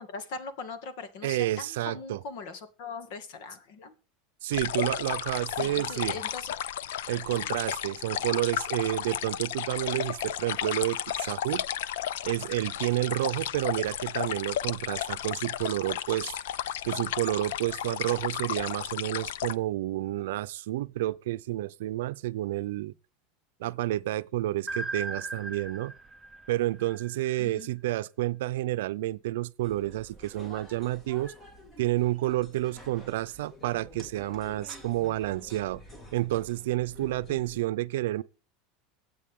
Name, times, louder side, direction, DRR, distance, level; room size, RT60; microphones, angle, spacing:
voice 1, 0.0-3.9 5.5-6.5 7.3-7.5 27.4-28.0, left 4 dB, 60° left, 2.2 m, -41 dB
voice 2, 1.2-2.2 4.4-6.2 7.1-11.6 12.2-16.4 16.8-22.9 23.6-25.9 26.5-31.3 31.8-35.8 36.1-38.2, right 16 dB, 85° right, 0.6 m, -30 dB
sound 1, 4.5-19.5, left 11 dB, 85° left, 0.6 m, -33 dB
sound 2, 24.7-27.6, right 2 dB, 10° right, 0.7 m, -38 dB
sound 3, 29.6-37.6, left 1 dB, 20° left, 2.0 m, -49 dB
23.5 x 8.3 x 3.7 m
supercardioid pair, 150°, 0 cm